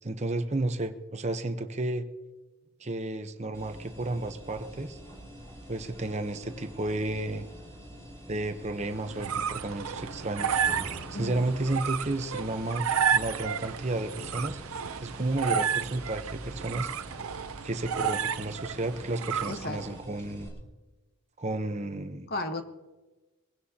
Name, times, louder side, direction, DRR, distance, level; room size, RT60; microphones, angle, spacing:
voice 1, 0.0-2.1 2.8-5.0 5.7-7.5 8.3-10.6 11.1-14.6 15.0-16.9 17.6-20.5 21.4-22.3, right 2 dB, 30° right, 8 dB, 0.9 m, -32 dB
sound 1, 3.5-20.5, equal, 15° left, 6.1 m, -47 dB
sound 2, 8.8-20.0, right 7 dB, 75° right, 0.7 m, -32 dB
voice 2, 11.1-11.5 19.5-19.8 22.3-22.6, left 2 dB, 45° left, 7 dB, 1.2 m, -34 dB
22.5 x 16.0 x 2.9 m, 1.2 s
head